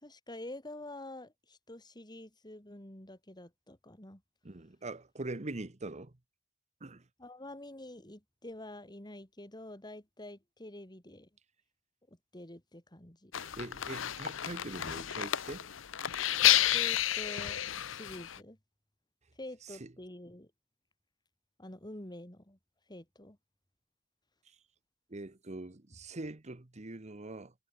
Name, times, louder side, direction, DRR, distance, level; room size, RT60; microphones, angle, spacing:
voice 1, 0.0-4.2 7.2-11.3 12.1-13.3 16.7-17.6 17.9-18.6 19.4-20.5 21.6-22.6 22.9-23.4, left 1 dB, 20° left, 4.1 m, -47 dB
voice 2, 4.4-6.1 6.8-7.0 13.3-15.7 19.8-19.9 25.1-27.5, right 2 dB, 35° right, 1.1 m, -43 dB
sound 1, 13.3-18.4, left 12 dB, 75° left, 0.8 m, -30 dB
head